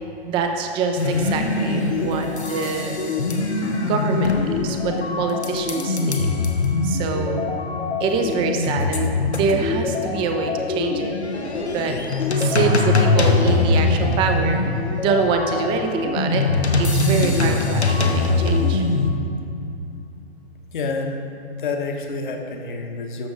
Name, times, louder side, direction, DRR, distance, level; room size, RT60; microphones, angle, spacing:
voice 1, 0.2-3.0 3.8-6.3 6.8-7.4 8.0-11.1 11.6-12.0 12.4-14.6 15.0-16.5 16.8-18.8, right 5 dB, 15° right, 5 dB, 0.6 m, -25 dB
sound 1, 1.0-19.1, left 3 dB, 85° left, 1.2 m, -22 dB
voice 2, 20.7-21.2 21.6-23.3, left 3 dB, 50° left, 3 dB, 1.3 m, -28 dB
12.5 x 6.9 x 3.9 m, 2.7 s
figure-of-eight pair, 120°, 32 cm